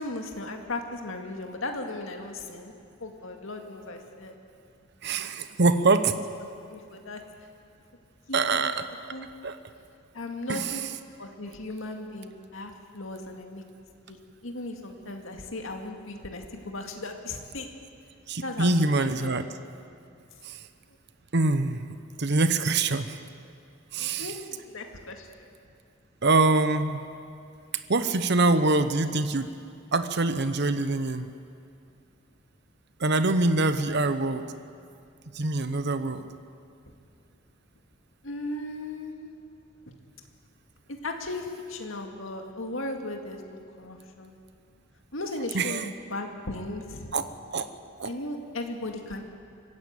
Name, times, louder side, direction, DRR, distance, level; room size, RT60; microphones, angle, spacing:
voice 1, 0.0-2.7 3.0-4.4 5.2-5.3 6.7-7.2 8.3-8.6 9.1-9.3 10.1-10.8 11.2-13.6 14.1-17.7 18.4-19.4 24.0-25.5 36.9-37.0 38.2-39.3 40.9-43.4 43.8-44.4 45.1-47.1 48.0-49.2, left 2 dB, 75° left, 3 dB, 2.2 m, -37 dB
voice 2, 5.0-6.2 8.3-8.8 9.4-9.6 10.5-10.8 18.3-19.5 20.4-20.6 21.3-21.9 22.2-23.2 23.9-24.3 26.2-27.1 27.9-29.5 29.9-31.3 33.0-34.5 35.3-36.2 45.5-45.9 47.1-47.3 47.5-47.7 48.0-48.1, right 3 dB, 55° right, 10 dB, 0.9 m, -24 dB
24.0 x 15.0 x 9.0 m, 2.4 s
head